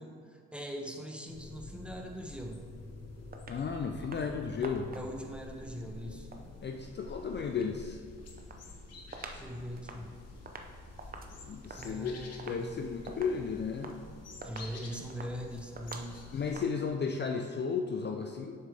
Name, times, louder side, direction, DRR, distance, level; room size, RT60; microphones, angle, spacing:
voice 1, 0.0-2.7 4.9-6.3 9.3-10.1 11.7-12.8 14.4-16.3, equal, 5° right, 2 dB, 0.9 m, -41 dB
sound 1, 1.3-16.7, left 2 dB, 55° left, 1.2 m, -48 dB
sound 2, 3.3-3.6 4.0-4.3 4.6-5.3 6.1-7.8 8.1-9.5 9.8-16.7, right 3 dB, 30° right, 0.7 m, -48 dB
voice 2, 3.5-4.9 6.6-8.0 11.4-13.9 16.3-18.6, left 5 dB, 35° left, 4 dB, 0.5 m, -34 dB
7.5 x 6.3 x 3.4 m, 2.1 s
cardioid pair, 90°, 30 cm